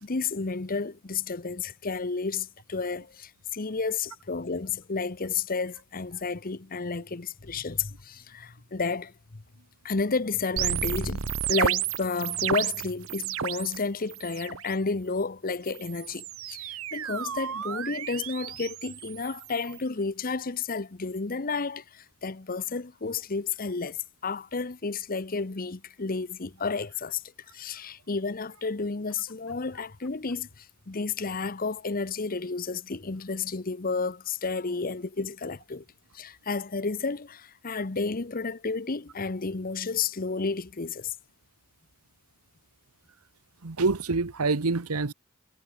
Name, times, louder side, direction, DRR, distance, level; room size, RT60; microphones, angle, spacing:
voice 1, 0.0-9.4 9.8-27.2 27.5-35.8 36.1-41.1, left 4 dB, 40° left, 0.9 m, -31 dB
sound 1, 10.6-13.8 14.1-14.7 15.7-19.8, right 9 dB, 65° right, 0.8 m, -32 dB
Giggle, 29.1-30.4 31.2-31.7 32.0-32.2 33.1-33.4, left 4 dB, 80° left, 5.7 m, -56 dB
voice 2, 43.6-45.1, right 3 dB, 90° right, 1.1 m, -26 dB
head